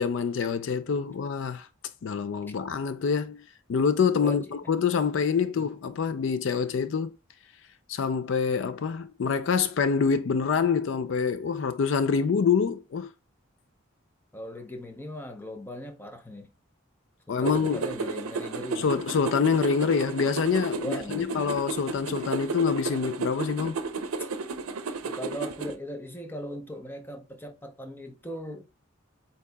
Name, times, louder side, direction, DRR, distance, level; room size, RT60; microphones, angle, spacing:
voice 1, 0.0-1.7 2.0-3.4 3.7-7.2 7.9-13.1 17.3-17.8 18.8-23.8, left 6 dB, 60° left, 0.3 m, -26 dB
voice 2, 14.3-16.5 17.3-19.0 20.8-21.6 25.0-28.7, equal, 10° left, 0.6 m, -39 dB
sound 1, 17.4-25.7, right 4 dB, 85° right, 0.6 m, -33 dB
8.2 x 2.9 x 2.2 m
head